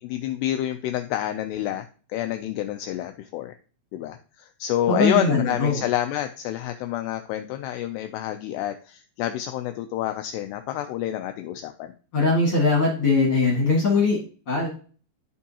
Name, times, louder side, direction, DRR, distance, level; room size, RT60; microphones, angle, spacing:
voice 1, 0.0-3.5 3.9-11.9, left 12 dB, 85° left, 7 dB, 2.4 m, -28 dB
voice 2, 4.9-5.8 12.1-14.2 14.5-14.7, left 3 dB, 45° left, -2 dB, 1.8 m, -21 dB
13.5 x 4.6 x 2.8 m, 0.40 s
omnidirectional pair, 5.3 m